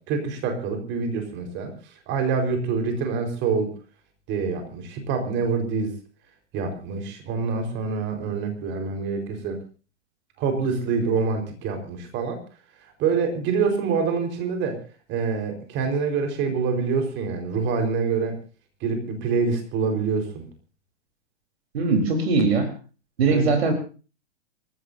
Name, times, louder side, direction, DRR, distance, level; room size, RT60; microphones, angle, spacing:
voice 1, 0.1-3.7 4.3-5.9 6.5-9.6 10.4-12.4 12.8-14.8 15.1-18.4 18.8-20.4 23.3-23.5, right 5 dB, 30° right, 5 dB, 4.6 m, -26 dB
voice 2, 21.7-22.7 23.2-23.7, right 4 dB, 60° right, 5 dB, 4.0 m, -20 dB
27.5 x 15.0 x 2.7 m, 0.35 s
figure-of-eight pair, 105°, 35 cm